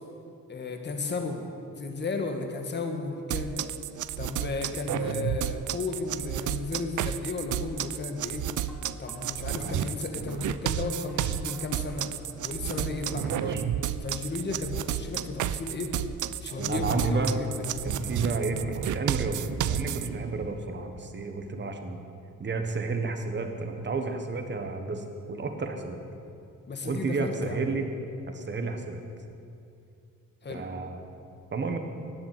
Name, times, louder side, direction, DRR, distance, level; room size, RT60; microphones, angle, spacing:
voice 1, 0.5-3.6 4.2-8.5 9.0-12.1 12.4-13.7 14.0-15.9 16.4-17.5 26.7-27.6 30.4-30.6, left 3 dB, 35° left, 4 dB, 1.8 m, -34 dB
sound 1, 3.3-20.1, right 11 dB, 70° right, 0.6 m, -32 dB
sound 2, 8.6-13.3, left 2 dB, 5° left, 2.9 m, -49 dB
Motor vehicle (road) / Engine starting / Accelerating revving vroom, 10.3-10.4 10.6-10.8 11.5-11.6 12.8-20.6, right 5 dB, 55° right, 1.0 m, -41 dB
voice 2, 13.3-13.6 16.6-17.4 17.8-22.0 22.4-26.0 26.8-27.9 28.3-29.0 30.5-31.0 31.5-31.8, right 3 dB, 35° right, 5 dB, 1.6 m, -31 dB
18.0 x 7.3 x 9.2 m, 2.6 s
cardioid pair, 140°, 31 cm